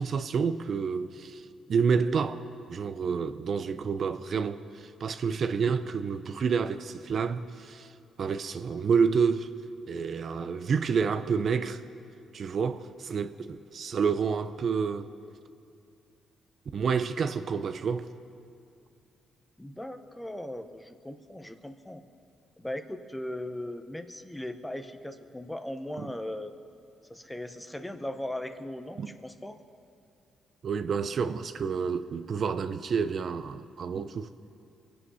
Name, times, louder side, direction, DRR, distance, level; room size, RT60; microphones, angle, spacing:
voice 1, 0.0-1.4 1.7-2.4 2.7-7.9 8.2-9.5 9.9-11.8 12.3-15.1 16.7-18.1 26.0-26.1 29.0-29.1 30.6-34.3, right 6 dB, 50° right, 0.6 m, -29 dB
voice 2, 19.6-22.0 22.6-26.5 27.1-29.6, left 1 dB, 10° left, 0.9 m, -38 dB
23.0 x 8.6 x 5.6 m
cardioid pair, 90°, 0 cm